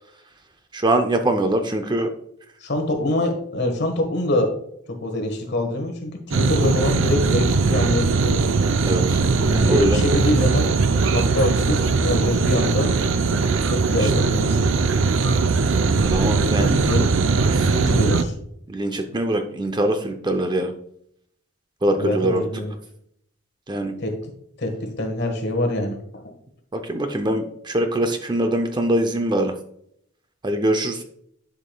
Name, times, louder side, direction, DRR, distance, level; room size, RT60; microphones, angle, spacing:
voice 1, 0.7-2.1 8.9-9.2 9.5-10.0 14.0-14.1 16.0-16.7 17.5-17.7 18.7-20.7 21.8-22.4 23.7-23.9 26.7-29.5 30.4-31.0, right 1 dB, 20° right, 6 dB, 0.5 m, -23 dB
voice 2, 2.6-4.5 4.9-8.5 9.5-10.7 11.1-12.9 13.7-14.6 16.6-17.2 17.6-18.3 21.9-22.7 24.0-24.3 24.6-26.2, left 1 dB, 55° left, 3 dB, 1.4 m, -25 dB
sound 1, 6.3-18.2, right 4 dB, 70° right, 0.5 m, -20 dB
11.0 x 5.1 x 2.3 m, 0.70 s
head